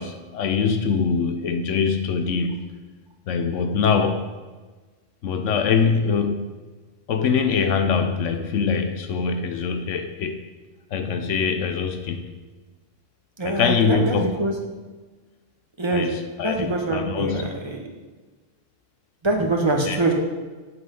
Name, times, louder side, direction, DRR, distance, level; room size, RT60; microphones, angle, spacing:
voice 1, 0.0-2.7 3.3-4.3 5.2-6.5 7.1-10.4 10.9-12.3 13.4-14.3 15.9-17.5 19.9-20.0, left 5 dB, 90° left, 7 dB, 1.1 m, -23 dB
voice 2, 13.4-14.5 15.8-16.1 16.4-17.9 19.2-20.1, right 2 dB, 25° right, 1 dB, 1.4 m, -24 dB
8.1 x 7.6 x 5.3 m, 1.3 s
omnidirectional pair, 1.2 m